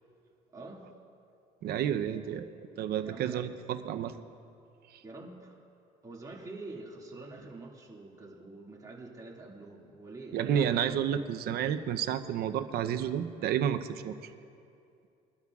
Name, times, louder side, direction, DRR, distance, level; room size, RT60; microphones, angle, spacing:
voice 1, 0.5-0.9 3.0-3.5 5.0-5.6 6.0-11.0, right 2 dB, 20° right, -3 dB, 2.1 m, -46 dB
voice 2, 1.6-2.5 2.8-4.1 4.9-5.0 10.3-14.1, right 9 dB, 70° right, 9 dB, 0.7 m, -30 dB
23.0 x 12.0 x 2.4 m, 2.6 s
cardioid pair, 110°, 17 cm